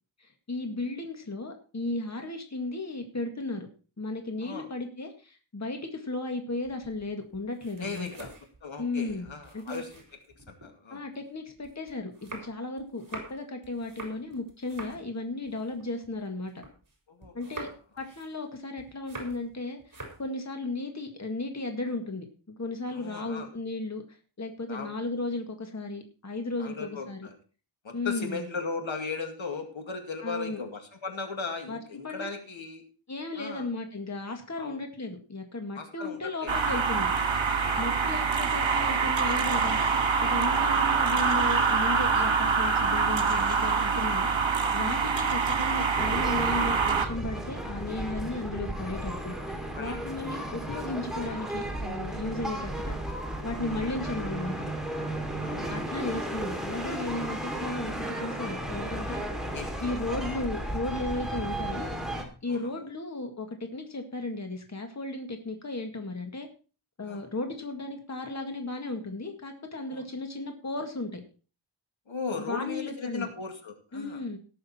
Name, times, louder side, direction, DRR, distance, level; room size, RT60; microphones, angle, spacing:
voice 1, 0.2-3.7 4.0-8.1 8.8-9.8 10.9-16.6 17.3-17.7 18.0-24.0 24.4-27.3 27.9-28.5 30.2-30.6 31.7-32.3 33.1-37.1 37.8-39.8 40.2-44.3 44.7-53.0 53.4-54.6 55.7-59.2 59.8-61.9 62.4-66.5 67.0-71.2 72.3-73.3 73.9-74.4, left 2 dB, 35° left, 4 dB, 1.9 m, -35 dB
sound 1, 6.6-10.7 11.1-16.9 17.2-19.5 19.8-20.3, right 2 dB, 40° right, 4.1 m, -46 dB
voice 2, 7.8-8.3 8.6-10.0 10.5-11.0 17.1-17.6 22.9-23.5 24.7-24.9 26.6-27.3 27.8-32.9 33.4-33.7 34.6-34.8 35.8-36.5 37.6-37.9 40.3-40.6 49.7-49.9 53.7-53.8 55.4-55.7 59.5-59.8 62.5-62.7 67.0-67.2 69.9-70.0 72.1-74.2, left 4 dB, 75° left, 4 dB, 2.4 m, -37 dB
sound 2, 36.5-47.1, right 5 dB, 70° right, 1.9 m, -25 dB
sound 3, 46.0-62.2, right 1 dB, ahead, 2.6 m, -34 dB
18.0 x 6.6 x 4.3 m, 0.36 s
wide cardioid pair, 105°, 47 cm